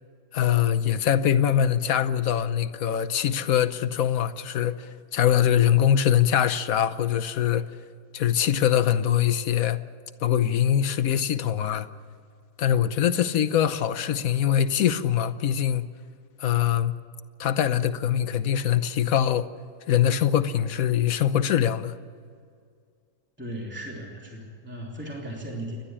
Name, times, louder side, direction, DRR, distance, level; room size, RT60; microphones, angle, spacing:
voice 1, 0.3-7.7 8.1-9.8 10.2-11.9 12.6-15.9 16.4-16.9 17.4-19.5 19.9-21.9, left 10 dB, 70° left, 1.3 m, -23 dB
voice 2, 23.4-25.8, right 1 dB, 5° right, 3.0 m, -36 dB
29.0 x 12.0 x 8.8 m
omnidirectional pair, 1.6 m